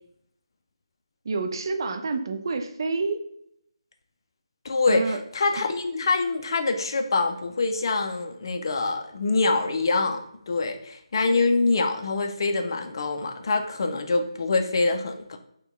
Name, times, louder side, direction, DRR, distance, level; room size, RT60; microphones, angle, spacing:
voice 1, 1.2-3.2 4.9-5.2, right 3 dB, 45° right, 6 dB, 0.4 m, -28 dB
voice 2, 4.6-15.4, left 3 dB, 45° left, 6 dB, 0.4 m, -25 dB
4.0 x 2.2 x 3.4 m, 0.72 s
figure-of-eight pair, 155°, 3 cm